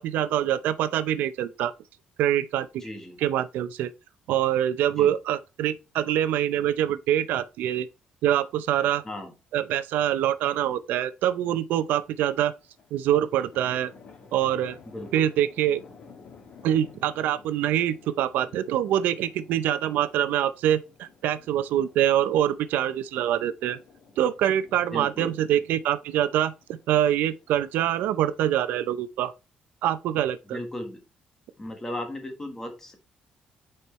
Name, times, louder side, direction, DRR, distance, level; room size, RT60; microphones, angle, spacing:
voice 1, 0.0-1.7 2.2-2.8 3.2-3.9 4.3-7.9 8.2-9.0 9.5-12.5 12.9-13.9 14.3-14.8 15.1-15.8 16.6-23.8 24.2-29.3 29.8-30.6, right 11 dB, 80° right, 0.6 m, -25 dB
voice 2, 2.8-3.2 5.0-5.1 9.0-9.3 14.8-15.3 24.9-25.4 30.5-31.0 31.6-32.9, left 1 dB, 15° left, 1.5 m, -36 dB
sound 1, 12.6-28.9, left 5 dB, 40° left, 1.6 m, -53 dB
9.0 x 4.4 x 3.2 m
cardioid pair, 165°, 3 cm